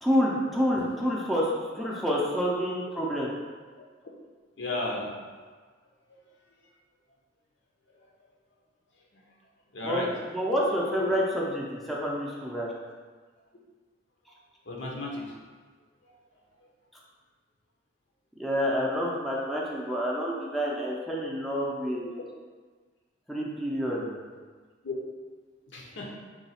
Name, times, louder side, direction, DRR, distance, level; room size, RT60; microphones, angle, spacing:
voice 1, 0.0-3.3 9.8-12.7 18.4-22.1 23.3-24.2, equal, ahead, -5 dB, 0.5 m, -28 dB
voice 2, 4.6-5.1 9.7-10.1 11.0-11.1 14.7-15.3 24.8-25.0 25.7-26.1, left 2 dB, 70° left, -1 dB, 0.7 m, -33 dB
3.9 x 2.3 x 4.1 m, 1.5 s
head